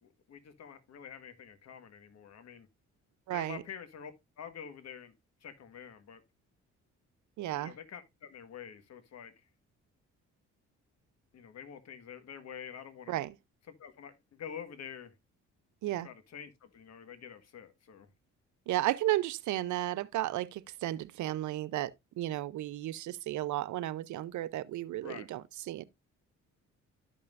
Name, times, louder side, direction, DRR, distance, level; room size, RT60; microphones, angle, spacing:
voice 1, 0.0-2.7 3.3-4.1 4.4-5.1 5.4-6.2 7.6-9.3 11.3-13.2 13.8-15.1 15.9-18.1 25.0-25.3, left 8 dB, 60° left, 1.5 m, -47 dB
voice 2, 3.3-3.6 7.4-7.7 13.1-13.3 15.8-16.1 18.7-25.8, right 15 dB, 75° right, 0.6 m, -34 dB
13.0 x 5.5 x 2.5 m
cardioid pair, 90°, 30 cm